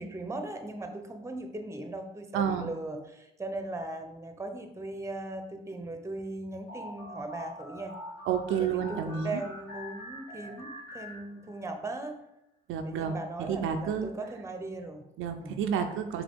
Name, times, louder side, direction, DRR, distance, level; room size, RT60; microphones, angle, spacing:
voice 1, 0.0-8.0 8.6-12.2 12.8-15.0 15.4-15.6, right 2 dB, 15° right, 6 dB, 0.8 m, -38 dB
voice 2, 2.3-2.7 8.3-9.4 12.7-14.1 15.2-16.2, right 7 dB, 75° right, 6 dB, 0.5 m, -30 dB
sound 1, 6.7-11.8, equal, 80° left, 1.3 m, -44 dB
5.0 x 2.8 x 3.6 m, 0.86 s
supercardioid pair, 55°, 21 cm